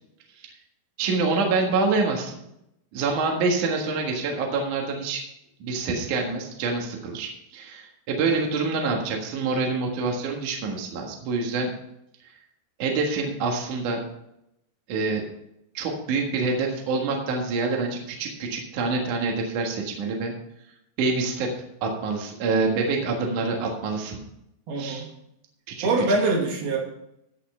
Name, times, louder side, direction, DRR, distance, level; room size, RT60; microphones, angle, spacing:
voice 1, 1.0-2.4 2.9-5.2 5.6-11.7 12.8-14.0 14.9-15.3 15.7-20.3 21.0-21.5 21.8-24.2 24.8-25.1 25.7-25.9, right 4 dB, 60° right, 1 dB, 2.8 m, -26 dB
voice 2, 24.7-25.1 25.8-26.8, right 2 dB, 75° right, -1 dB, 4.2 m, -23 dB
16.0 x 5.7 x 5.5 m, 0.80 s
omnidirectional pair, 4.5 m